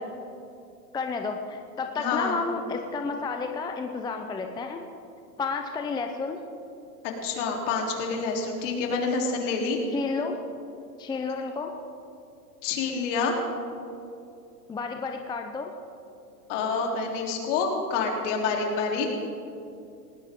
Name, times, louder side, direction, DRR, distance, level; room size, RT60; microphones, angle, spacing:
voice 1, 0.9-4.8 5.4-6.4 9.9-10.4 11.0-11.7 14.7-15.7, left 4 dB, 10° left, 4 dB, 0.7 m, -31 dB
voice 2, 2.0-2.4 7.2-9.8 12.6-13.4 16.5-19.1, left 4 dB, 50° left, 0 dB, 3.6 m, -27 dB
19.0 x 18.5 x 3.8 m, 2.7 s
hypercardioid pair, 120°, 47 cm